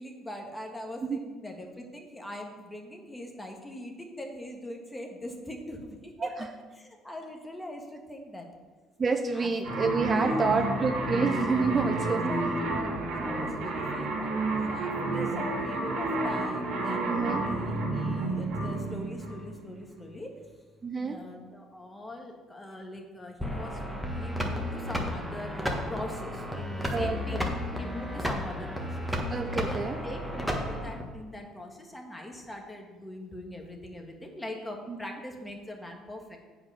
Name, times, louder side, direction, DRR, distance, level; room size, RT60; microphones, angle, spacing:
voice 1, 0.0-6.3 6.8-8.5 9.3-9.5 10.1-10.5 12.0-12.9 13.2-14.3 14.7-20.3 21.0-27.5 27.8-29.2 29.5-36.4, left 1 dB, 15° left, 2 dB, 1.6 m, -42 dB
voice 2, 9.0-12.3 17.1-17.4 20.8-21.2 26.9-27.4 29.3-30.0 34.9-35.0, right 4 dB, 35° right, 6 dB, 0.6 m, -28 dB
sound 1, 9.6-19.8, right 2 dB, 70° right, 2.0 m, -30 dB
sound 2, 23.4-31.0, left 1 dB, 5° right, 1.5 m, -33 dB
8.0 x 4.8 x 5.7 m, 1.4 s
supercardioid pair, 80°, 0 cm